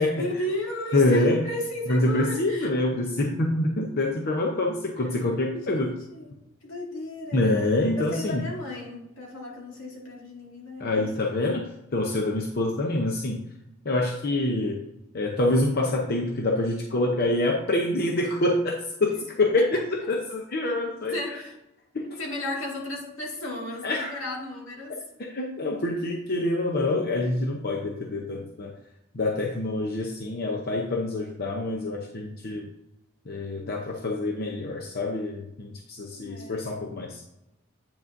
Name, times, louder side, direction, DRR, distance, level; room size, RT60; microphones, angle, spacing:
voice 1, 0.0-2.7 5.6-6.3 6.6-7.6 7.9-11.4 21.1-21.5 22.2-24.9 36.1-36.6, left 1 dB, 80° left, -2 dB, 2.0 m, -34 dB
voice 2, 0.9-1.4 1.9-5.9 7.3-8.4 10.8-11.6 11.9-13.4 13.8-14.8 15.1-19.8 20.1-21.2 21.9-22.2 23.8-24.1 25.3-28.7 29.1-32.7 33.3-37.2, left 2 dB, 50° left, 0 dB, 0.7 m, -26 dB
8.7 x 6.0 x 2.6 m, 0.90 s
head